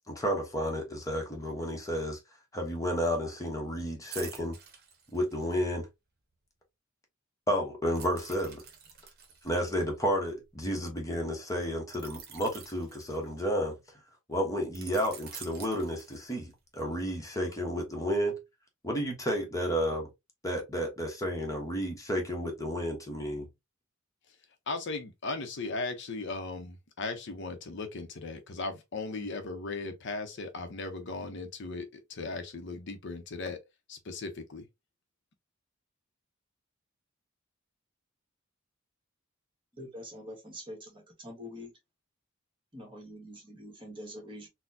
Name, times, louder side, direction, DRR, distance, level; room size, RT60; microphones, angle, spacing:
voice 1, 0.1-2.2 2.5-4.6 5.1-5.9 7.5-8.6 9.4-13.8 14.3-18.4 18.8-20.1 20.4-23.5, equal, 15° left, 1.0 m, -31 dB
sound 1, 4.1-5.6 7.9-10.7 11.9-13.7 14.7-16.6 17.0-17.2, right 7 dB, 50° right, 1.0 m, -48 dB
voice 2, 24.7-33.6 33.9-34.6, left 3 dB, 60° left, 0.7 m, -37 dB
voice 3, 39.8-41.7 42.7-44.5, equal, 25° right, 1.5 m, -45 dB
4.1 x 2.2 x 2.7 m
head